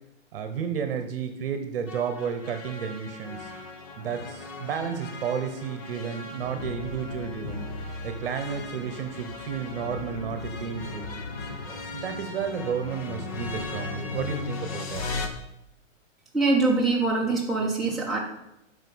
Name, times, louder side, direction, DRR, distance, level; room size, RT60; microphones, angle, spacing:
voice 1, 0.3-3.5 4.0-7.7 8.0-11.1 11.7-15.0, right 7 dB, 45° right, 8 dB, 1.2 m, -32 dB
sound 1, 1.9-15.3, left 3 dB, 30° left, 0.9 m, -37 dB
voice 2, 16.3-18.2, right 3 dB, ahead, -6 dB, 1.2 m, -23 dB
9.0 x 5.6 x 7.9 m, 0.83 s
hypercardioid pair, 170°, 38 cm